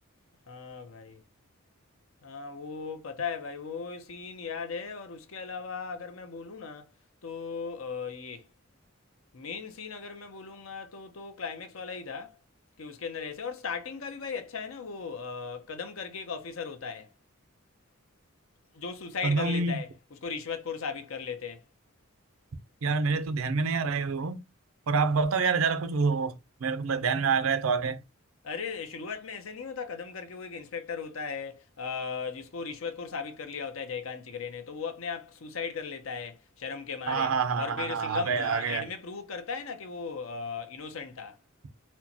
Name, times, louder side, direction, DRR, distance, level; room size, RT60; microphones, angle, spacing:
voice 1, 0.5-1.2 2.2-6.9 7.2-8.5 9.3-12.3 12.8-17.1 18.7-21.6 28.4-41.4, left 5 dB, 85° left, 0.7 m, -37 dB
voice 2, 19.2-19.8 22.8-24.4 24.9-26.4 26.6-28.0 37.1-38.9, right 4 dB, 90° right, 0.5 m, -27 dB
4.3 x 2.2 x 2.7 m
head